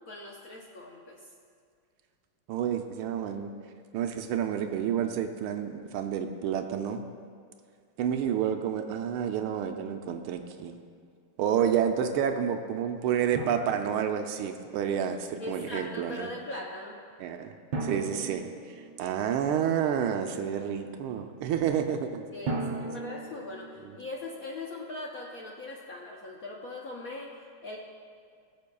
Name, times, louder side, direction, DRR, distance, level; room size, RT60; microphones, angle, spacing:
voice 1, 0.1-1.3 15.4-17.0 22.3-27.8, left 2 dB, 60° left, -3 dB, 0.9 m, -40 dB
voice 2, 2.5-3.5 3.9-7.0 8.0-10.8 11.4-16.3 17.2-17.5 17.8-18.5 19.0-22.2 23.8-24.0, right 8 dB, 80° right, 6 dB, 1.5 m, -29 dB
Drum, 13.4-14.8 17.7-19.5 22.5-24.1, right 3 dB, 60° right, 1.4 m, -37 dB
20.5 x 7.0 x 2.3 m, 2.1 s
omnidirectional pair, 2.4 m